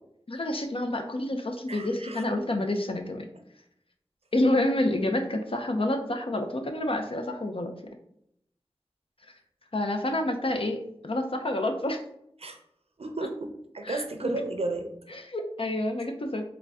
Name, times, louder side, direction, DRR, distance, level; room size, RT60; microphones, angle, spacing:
voice 1, 0.3-3.3 4.3-7.7 9.7-10.8 11.0-12.0 13.8-14.3 15.1-16.4, left 1 dB, 60° left, 5 dB, 0.6 m, -28 dB
voice 2, 1.7-2.2 12.4-12.6 13.0-14.9, right 2 dB, 75° right, 5 dB, 0.5 m, -33 dB
3.8 x 2.2 x 3.5 m, 0.73 s
wide cardioid pair, 45°, 10 cm